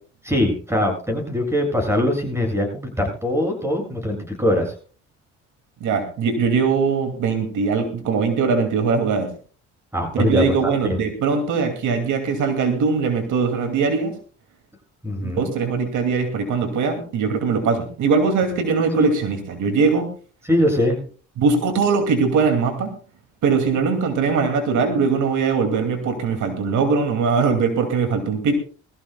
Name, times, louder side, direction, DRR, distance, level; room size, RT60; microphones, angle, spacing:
voice 1, 0.3-4.7 9.9-10.7 15.0-15.5 20.5-21.0, left 1 dB, 10° right, 2 dB, 7.3 m, -22 dB
voice 2, 5.8-9.3 10.2-14.1 15.2-20.1 21.4-22.9 23.4-28.5, right 5 dB, 80° right, 5 dB, 2.5 m, -21 dB
21.5 x 14.5 x 2.3 m, 0.38 s
cardioid pair, 90°, 30 cm